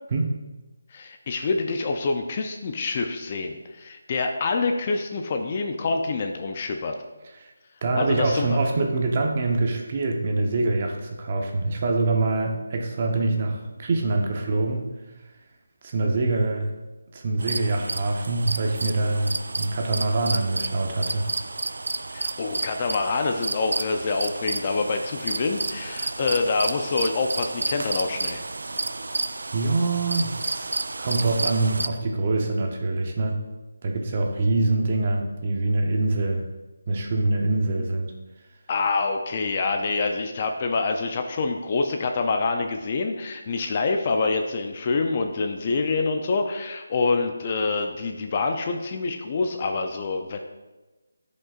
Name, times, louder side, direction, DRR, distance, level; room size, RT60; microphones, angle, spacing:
voice 1, 0.9-7.0 8.0-8.6 22.1-28.4 38.7-50.4, left 3 dB, 30° left, 5 dB, 0.5 m, -26 dB
voice 2, 7.8-14.9 15.8-16.7 17.1-21.3 29.5-30.7 31.0-33.4 33.8-36.5 36.9-38.1, right 2 dB, 35° right, 2 dB, 0.9 m, -24 dB
sound 1, 17.4-31.9, right 3 dB, 75° right, 0.4 m, -31 dB
10.5 x 5.3 x 2.5 m, 1.1 s
figure-of-eight pair, 165°, 0 cm